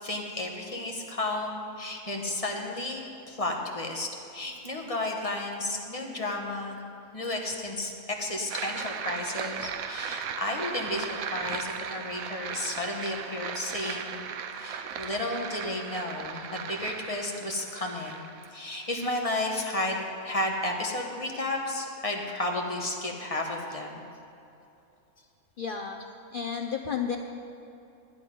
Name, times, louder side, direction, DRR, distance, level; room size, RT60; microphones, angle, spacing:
voice 1, 0.0-6.8 7.1-14.1 14.5-24.0, left 1 dB, 25° left, 1 dB, 1.1 m, -33 dB
sound 1, 8.5-19.4, right 7 dB, 80° right, 1.1 m, -37 dB
voice 2, 25.6-26.0 26.3-27.2, left 7 dB, 60° left, 3 dB, 0.5 m, -31 dB
11.5 x 11.0 x 5.2 m, 2.7 s
omnidirectional pair, 1.5 m